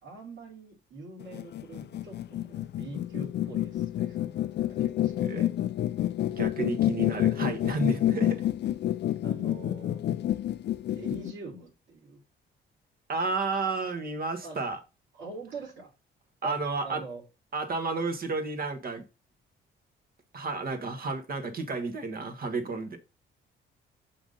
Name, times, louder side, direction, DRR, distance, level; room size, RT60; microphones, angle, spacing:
voice 1, 0.0-4.3 4.6-5.5 9.2-10.0 11.0-12.2 14.4-14.6 15.1-15.9 16.4-16.6 16.8-17.2, right 3 dB, 80° right, 2.6 m, -44 dB
sound 1, 1.2-11.3, left 12 dB, 60° left, 0.5 m, -29 dB
voice 2, 6.3-8.5 13.1-14.8 16.4-17.0 17.5-19.0 20.3-23.0, right 3 dB, 50° right, 1.6 m, -31 dB
5.9 x 4.0 x 5.3 m
cardioid pair, 90°, 20 cm